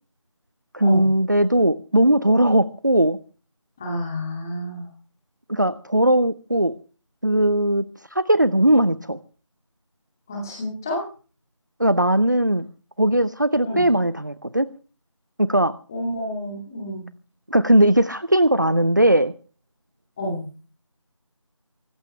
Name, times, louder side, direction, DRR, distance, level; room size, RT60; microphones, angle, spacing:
voice 1, 0.7-3.2 5.5-6.7 7.2-7.8 8.1-9.2 11.8-12.7 13.0-14.7 15.4-15.7 17.5-19.3, right 1 dB, 35° right, 16 dB, 0.7 m, -19 dB
voice 2, 3.8-4.9 10.3-11.1 13.6-13.8 15.9-17.0 20.2-20.4, equal, 5° left, -1 dB, 2.2 m, -29 dB
25.0 x 14.5 x 3.2 m, 0.36 s
figure-of-eight pair, 170°, 17 cm